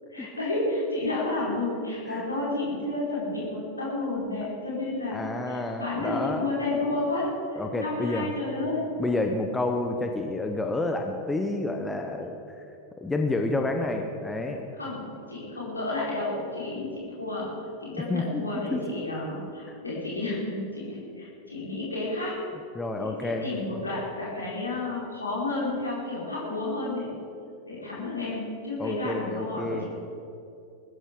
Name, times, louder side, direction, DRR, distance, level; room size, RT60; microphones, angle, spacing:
voice 1, 0.1-8.9 14.8-17.5 17.8-22.3 23.0-27.1 27.7-29.9, left 2 dB, 80° left, -7 dB, 4.7 m, -31 dB
voice 2, 5.1-6.5 7.6-8.3 9.0-12.6 13.0-14.7 18.1-18.4 18.7-18.8 19.7-19.8 22.7-23.4 28.8-29.9, left 2 dB, 10° left, 4 dB, 1.0 m, -29 dB
20.5 x 14.5 x 3.9 m, 2.7 s
figure-of-eight pair, 90°, 0 cm